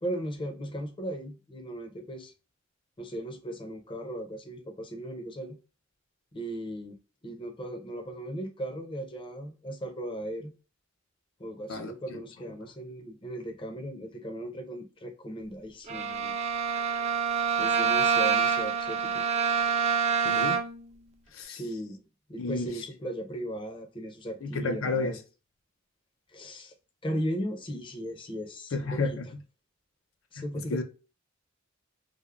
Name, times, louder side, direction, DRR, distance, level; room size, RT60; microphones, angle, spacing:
voice 1, 0.0-2.3 3.0-5.6 6.3-7.0 7.2-10.5 11.4-16.3 17.6-19.2 21.5-25.2 26.3-26.7 27.0-29.2 30.3-30.8, right 1 dB, 25° left, 0.5 m, -37 dB
voice 2, 11.7-12.2 20.2-20.6 21.3-21.6 22.4-22.8 24.4-25.2 28.7-29.3 30.4-30.8, left 3 dB, 80° left, 0.5 m, -31 dB
Bowed string instrument, 15.9-20.9, right 6 dB, 35° right, 0.3 m, -26 dB
3.4 x 2.0 x 2.2 m
head